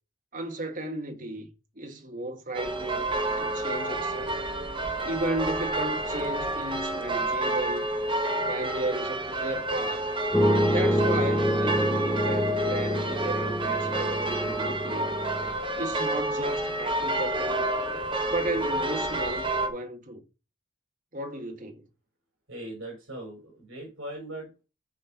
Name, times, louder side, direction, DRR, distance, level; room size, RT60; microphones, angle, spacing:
voice 1, 0.3-4.4 5.0-7.9 8.4-10.1 10.7-15.1 15.8-17.7 18.3-20.2 21.1-21.9, right 1 dB, 40° right, 1.6 m, -34 dB
sound 1, 2.5-19.7, right 1 dB, 25° right, 1.5 m, -29 dB
sound 2, 10.3-15.6, equal, 5° left, 1.2 m, -27 dB
voice 2, 22.5-24.6, right 1 dB, 75° right, 5.3 m, -40 dB
11.5 x 4.4 x 5.8 m
head